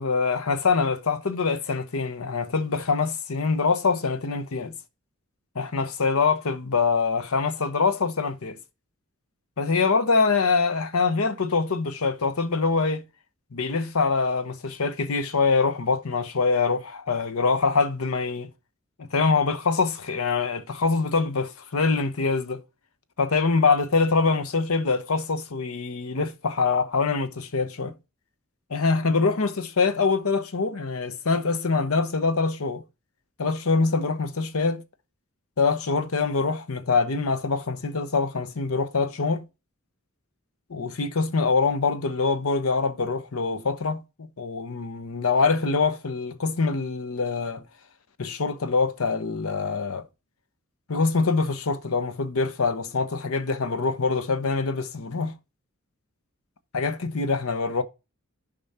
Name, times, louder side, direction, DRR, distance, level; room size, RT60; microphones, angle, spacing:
voice 1, 0.0-4.7 5.5-8.6 9.6-13.0 13.5-18.5 19.0-22.6 23.2-27.9 28.7-32.8 33.4-34.8 35.6-39.4 40.7-47.6 48.2-50.1 50.9-55.3 56.7-57.8, left 4 dB, 80° left, 0.9 m, -24 dB
6.8 x 5.3 x 4.2 m
head